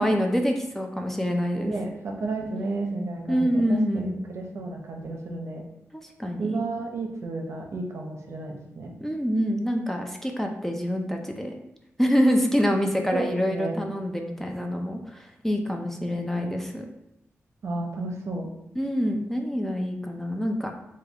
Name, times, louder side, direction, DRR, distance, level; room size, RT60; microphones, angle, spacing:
voice 1, 0.0-1.7 3.3-4.2 5.9-6.6 9.0-11.6 12.0-16.9 18.8-20.7, equal, 5° left, 2 dB, 0.3 m, -26 dB
voice 2, 1.7-5.6 6.4-8.9 13.1-13.8 17.6-18.5, right 2 dB, 65° right, 1 dB, 0.6 m, -32 dB
3.4 x 2.2 x 3.4 m, 0.82 s
wide cardioid pair, 110°, 5 cm